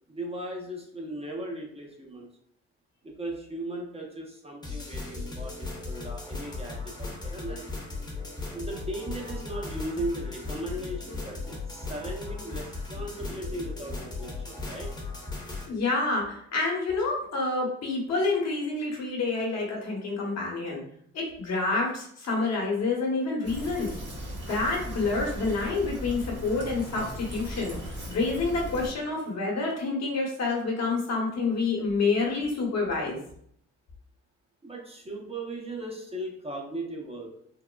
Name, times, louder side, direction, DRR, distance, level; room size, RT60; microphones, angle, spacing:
voice 1, 0.1-2.3 3.0-7.7 8.5-14.9 34.6-37.3, right 1 dB, 20° right, -1 dB, 0.6 m, -37 dB
sound 1, 4.6-15.7, left 3 dB, 15° left, 0.8 m, -37 dB
voice 2, 15.7-20.8 21.1-23.9 24.3-27.8 28.1-33.2, left 3 dB, 60° left, -1 dB, 1.0 m, -28 dB
Fill (with liquid), 23.4-28.9, equal, 35° right, 1.2 m, -38 dB
3.6 x 2.1 x 2.2 m, 0.68 s
cardioid pair, 90°, 30 cm